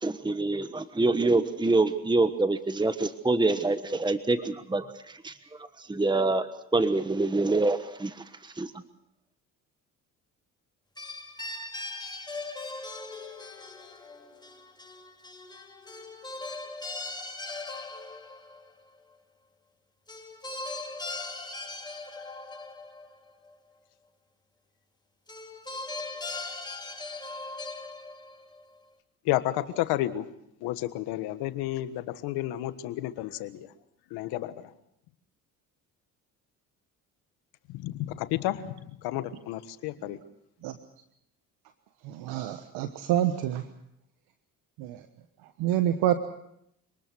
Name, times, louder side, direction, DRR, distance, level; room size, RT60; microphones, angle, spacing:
voice 1, 0.0-8.7, right 2 dB, 10° right, 11 dB, 1.3 m, -26 dB
sound 1, 11.0-18.7 20.1-23.5 25.3-28.6, left 3 dB, 10° left, 7.3 m, -39 dB
voice 2, 29.2-30.3 30.6-33.7 34.1-34.7 37.7-40.2, left 14 dB, 80° left, 12 dB, 1.5 m, -31 dB
voice 3, 42.0-43.6 44.8-45.0 45.6-46.1, right 12 dB, 80° right, 9 dB, 1.3 m, -27 dB
27.0 x 20.0 x 6.2 m, 0.76 s
supercardioid pair, 65°, 37 cm